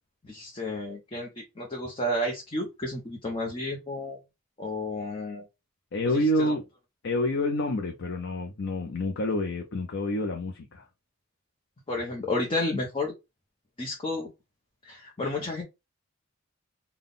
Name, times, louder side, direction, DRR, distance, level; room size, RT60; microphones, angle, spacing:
voice 1, 0.2-4.2 4.6-5.4 6.4-6.5 11.9-13.1 13.8-14.3 14.8-15.6, left 1 dB, 25° left, 0.8 m, -31 dB
voice 2, 5.9-6.6 7.0-10.8, left 1 dB, 55° left, 0.6 m, -28 dB
3.9 x 2.3 x 3.6 m
head